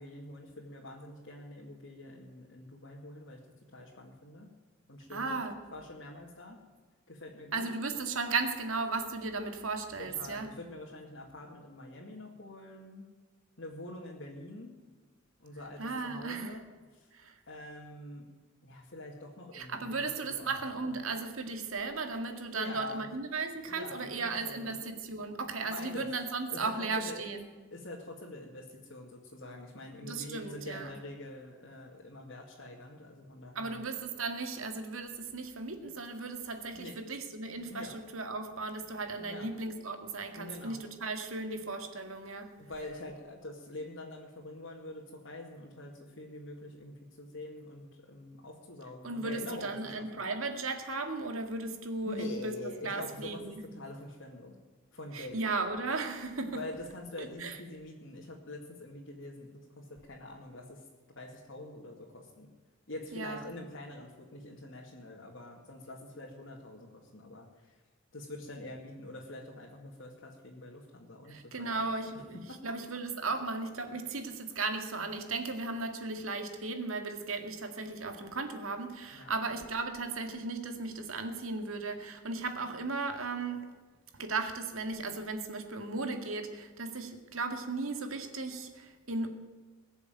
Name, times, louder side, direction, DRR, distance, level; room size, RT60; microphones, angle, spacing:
voice 1, 0.0-3.4 3.7-4.5 4.9-6.6 7.1-7.7 10.0-13.1 13.6-14.7 15.4-17.1 17.5-18.3 18.6-21.0 22.5-23.1 23.6-24.8 25.7-26.1 26.5-27.2 27.7-33.8 36.8-37.0 37.7-38.0 39.2-39.5 40.3-40.8 42.6-50.2 52.0-54.5 54.9-55.4 56.5-60.8 61.2-62.5 62.9-67.8 68.1-71.9 72.5-72.7 79.1-79.3, left 1 dB, 65° left, -3 dB, 2.2 m, -45 dB
voice 2, 5.1-5.6 7.5-10.5 15.8-16.6 17.1-17.4 19.5-27.5 30.0-30.9 33.6-42.6 49.0-52.5 52.8-53.6 55.1-56.6 57.2-57.6 63.1-63.4 71.3-83.7 84.1-89.3, right 3 dB, 85° right, 6 dB, 2.0 m, -36 dB
21.0 x 7.1 x 9.1 m, 1.4 s
head